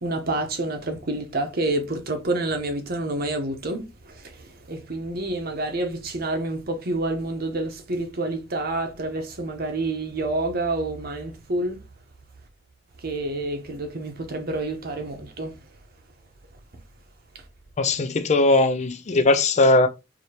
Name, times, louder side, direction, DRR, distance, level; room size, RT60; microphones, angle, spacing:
voice 1, 0.0-11.8 13.0-15.5, right 2 dB, 50° right, 0.9 m, -28 dB
voice 2, 17.8-19.9, left 2 dB, 35° left, 0.4 m, -19 dB
4.9 x 2.8 x 2.8 m
head